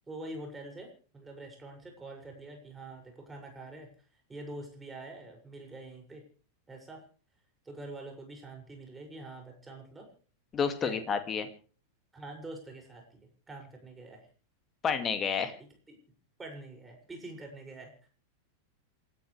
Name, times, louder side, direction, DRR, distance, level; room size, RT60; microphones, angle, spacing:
voice 1, 0.1-3.9 4.3-6.2 6.7-7.0 7.6-10.1 10.8-11.0 12.1-13.2 13.5-14.3 15.6-16.0 16.4-18.1, right 2 dB, 10° right, 2 dB, 6.6 m, -45 dB
voice 2, 10.5-11.5 14.8-15.5, left 6 dB, 25° left, 8 dB, 2.3 m, -30 dB
28.5 x 14.0 x 3.4 m, 0.41 s
figure-of-eight pair, 90°, 0 cm